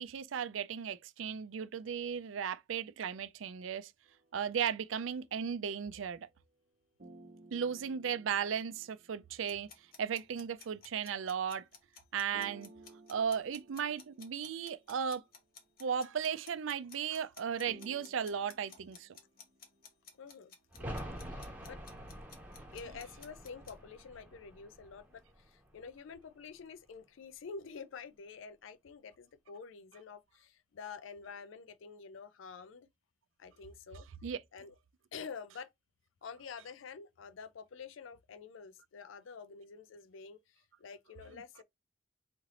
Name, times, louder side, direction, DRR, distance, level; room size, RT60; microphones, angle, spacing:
voice 1, 0.0-3.9 4.3-6.3 7.5-9.7 10.0-11.6 12.1-12.7 13.1-15.2 15.8-19.2 34.2-34.4, right 7 dB, 85° right, 0.4 m, -36 dB
sound 1, 4.1-6.7 7.0-10.6 12.3-16.0 17.7-19.9, right 2 dB, 45° right, 0.8 m, -59 dB
sound 2, 9.5-23.8, left 6 dB, 45° left, 1.0 m, -55 dB
voice 2, 20.2-20.5 20.8-21.0 21.3-21.8 22.7-32.9 33.4-34.0 34.5-34.7 35.1-35.7 36.2-41.6, left 5 dB, 80° left, 0.4 m, -48 dB
sound 3, 20.7-26.3 26.6-26.7, equal, 10° right, 1.2 m, -47 dB
4.2 x 3.2 x 3.7 m
head